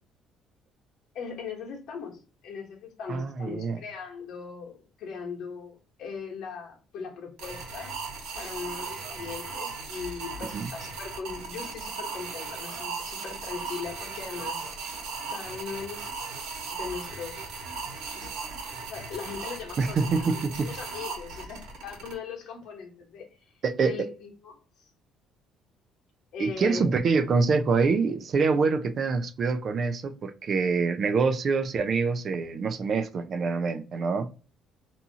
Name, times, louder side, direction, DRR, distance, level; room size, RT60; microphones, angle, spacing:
voice 1, 1.1-4.7 5.0-7.9 8.3-14.6 15.3-16.3 16.7-17.5 18.1-23.4 23.8-24.6 26.3-26.9, left 5 dB, 65° left, 1.1 m, -39 dB
voice 2, 3.1-3.8 10.5-10.7 19.8-20.7 23.6-24.1 26.4-34.3, right 4 dB, 45° right, 0.3 m, -25 dB
sound 1, 7.4-22.1, right 4 dB, 85° right, 1.1 m, -37 dB
2.7 x 2.4 x 2.7 m
cardioid pair, 130°, 0 cm